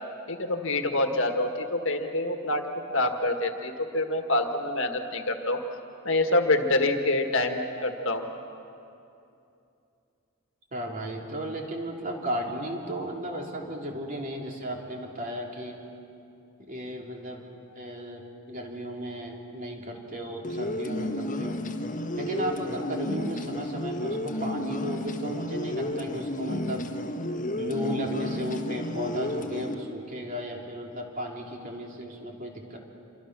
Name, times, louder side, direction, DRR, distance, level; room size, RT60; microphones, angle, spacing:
voice 1, 0.3-5.6 6.0-8.3, left 2 dB, 60° left, 5 dB, 1.7 m, -26 dB
voice 2, 10.7-15.9 16.6-17.5 17.7-21.6 22.1-26.9 27.6-32.8, equal, 40° right, 0 dB, 3.1 m, -35 dB
sound 1, 20.4-29.7, left 1 dB, 40° left, 1.5 m, -32 dB
27.5 x 24.5 x 6.1 m, 2.7 s
head